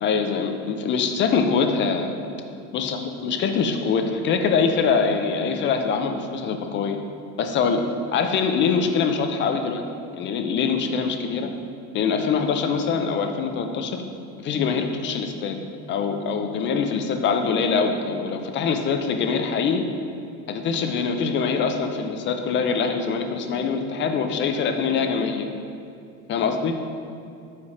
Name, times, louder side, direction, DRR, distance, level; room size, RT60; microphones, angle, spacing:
voice 1, 0.0-2.1 2.7-7.0 7.4-7.8 8.1-9.8 10.2-11.5 11.9-14.0 14.4-15.6 15.9-19.8 20.5-25.5 26.3-26.7, left 5 dB, 35° left, 6 dB, 0.4 m, -23 dB
4.9 x 4.1 x 5.6 m, 2.6 s
cardioid pair, 160°, 34 cm